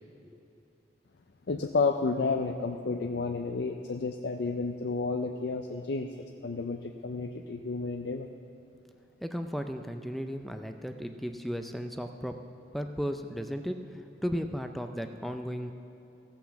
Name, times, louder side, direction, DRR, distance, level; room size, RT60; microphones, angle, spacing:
voice 1, 1.5-6.1 6.4-8.3, left 4 dB, 60° left, 4 dB, 0.4 m, -31 dB
voice 2, 9.2-12.4 12.7-15.7, equal, ahead, 6 dB, 0.4 m, -35 dB
16.0 x 5.8 x 7.0 m, 2.9 s
head